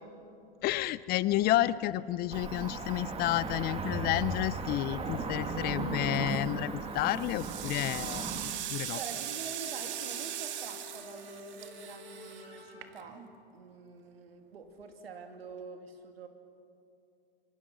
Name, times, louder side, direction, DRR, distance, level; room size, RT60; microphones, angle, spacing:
voice 1, 0.6-8.3 8.7-9.0, left 15 dB, 35° left, 18 dB, 0.5 m, -30 dB
Cricket / Motor vehicle (road), 2.3-8.6, right 3 dB, 20° right, 2.0 m, -36 dB
sound 1, 4.7-12.9, left 3 dB, 85° left, 4.0 m, -53 dB
sound 2, 6.1-6.5 7.0-13.3, right 11 dB, 40° right, 2.1 m, -40 dB
voice 2, 8.9-13.2 13.5-16.3, right 5 dB, 80° right, 5 dB, 2.8 m, -46 dB
26.0 x 24.5 x 6.2 m, 2.6 s
hypercardioid pair, 110°, 30 cm